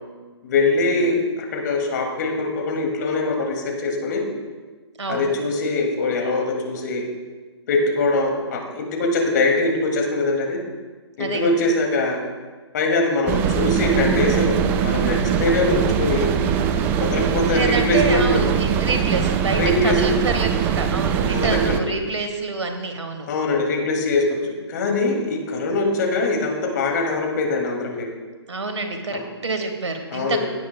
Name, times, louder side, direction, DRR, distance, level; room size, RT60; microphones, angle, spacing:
voice 1, 0.4-4.2 5.1-7.0 7.7-10.6 11.2-12.2 12.7-16.3 17.0-18.4 19.5-20.0 21.3-21.8 23.3-28.1 29.1-29.2 30.1-30.5, left 2 dB, 40° left, 1 dB, 2.6 m, -22 dB
voice 2, 5.0-5.3 11.2-11.6 17.5-23.3 28.5-30.5, right 3 dB, 80° right, 5 dB, 1.8 m, -27 dB
sound 1, 13.3-21.8, right 8 dB, 10° right, 0.4 m, -22 dB
17.5 x 9.1 x 2.3 m, 1.3 s
figure-of-eight pair, 140°, 15 cm